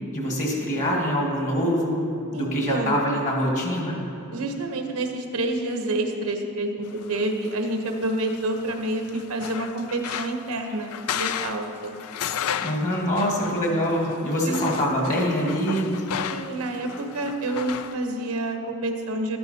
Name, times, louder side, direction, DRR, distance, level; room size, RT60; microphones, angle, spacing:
voice 1, 0.1-2.0 2.3-4.0 12.6-16.0, equal, 35° left, -2 dB, 1.7 m, -24 dB
voice 2, 2.3-3.0 4.3-11.9 14.4-14.8 16.3-19.4, right 2 dB, 90° right, 4 dB, 1.0 m, -28 dB
sound 1, 6.9-18.0, left 8 dB, 80° left, 0.4 m, -34 dB
12.0 x 9.7 x 2.8 m, 2.8 s
head